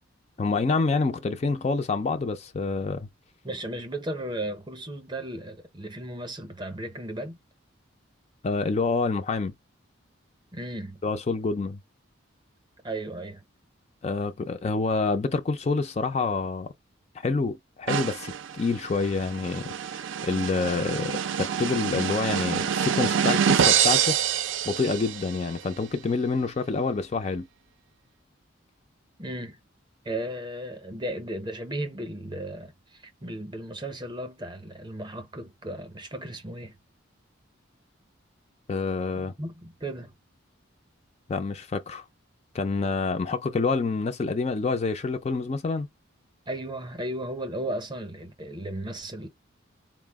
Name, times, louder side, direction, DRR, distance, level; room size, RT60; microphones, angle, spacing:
voice 1, 0.4-3.1 8.4-9.5 11.0-11.8 14.0-16.7 17.2-24.2 24.7-27.5 38.7-39.3 41.3-42.0 42.5-45.9, left 4 dB, 30° left, 0.3 m, -27 dB
voice 2, 3.4-7.4 10.5-11.0 12.8-13.4 29.2-29.6 30.0-36.8 39.2-40.1 46.5-49.3, right 1 dB, 20° right, 0.6 m, -35 dB
sound 1, 17.9-25.4, right 8 dB, 70° right, 0.4 m, -26 dB
4.1 x 2.0 x 3.3 m
head